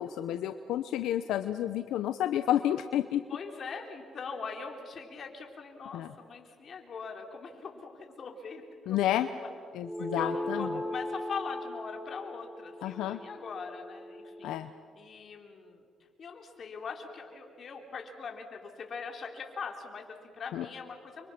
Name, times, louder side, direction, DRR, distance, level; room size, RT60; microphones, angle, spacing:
voice 1, 0.0-3.2 5.9-6.1 8.9-9.3 9.7-10.7 12.8-13.2 14.4-14.7 20.5-20.6, left 12 dB, 90° left, 9 dB, 0.8 m, -30 dB
voice 2, 3.3-9.4 10.0-14.6 14.9-15.8 16.2-21.3, left 5 dB, 50° left, 3 dB, 3.8 m, -42 dB
sound 1, 9.8-14.6, left 1 dB, ahead, 1.4 m, -38 dB
29.5 x 25.0 x 6.0 m, 2.3 s
cardioid pair, 90°, 0 cm